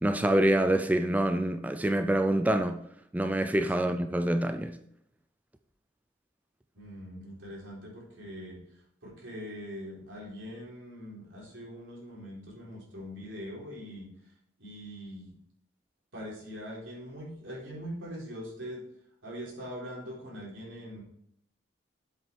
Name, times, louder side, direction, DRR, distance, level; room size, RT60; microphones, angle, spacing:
voice 1, 0.0-2.8 3.1-4.8, right 1 dB, 10° right, 0.3 m, -26 dB
voice 2, 6.7-14.1 14.6-15.3 16.1-18.8 19.2-21.0, equal, 85° right, 4.0 m, -42 dB
7.8 x 6.3 x 4.6 m
head